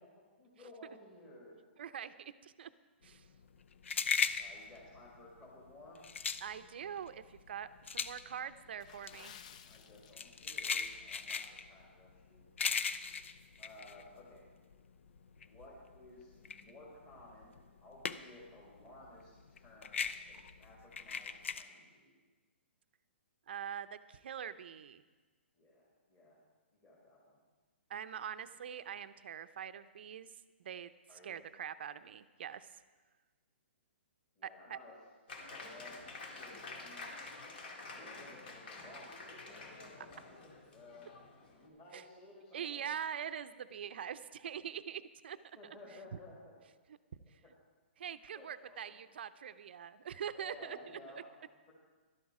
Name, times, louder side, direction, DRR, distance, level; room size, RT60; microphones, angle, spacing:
voice 1, 0.4-1.6 4.4-6.0 9.6-12.9 13.6-14.4 15.4-22.2 25.5-26.4 26.7-27.4 31.1-31.4 34.3-35.0 35.5-37.1 37.5-41.1 41.6-42.9 45.5-46.6 47.2-47.5 48.3-49.0 50.3-51.7, left 1 dB, 20° left, -7 dB, 2.2 m, -56 dB
voice 2, 1.8-2.7 3.0-3.3 6.4-9.3 23.5-25.0 27.9-30.3 30.6-30.9 31.2-32.7 34.4-34.8 41.9-42.0 42.5-45.4 48.0-50.8, right 8 dB, 55° right, 12 dB, 0.6 m, -43 dB
sound 1, 3.1-14.7 15.1-18.5 18.8-21.6, left 6 dB, 80° left, 0.6 m, -38 dB
Water / Splash splatter, 8.8-10.7 11.0-11.2 11.8-12.0 12.4-12.5, left 8 dB, 35° left, 0.5 m, -55 dB
Applause, 35.3-41.7, left 3 dB, 55° left, 2.0 m, -49 dB
12.0 x 12.0 x 4.9 m, 1.3 s
hypercardioid pair, 165°, 7 cm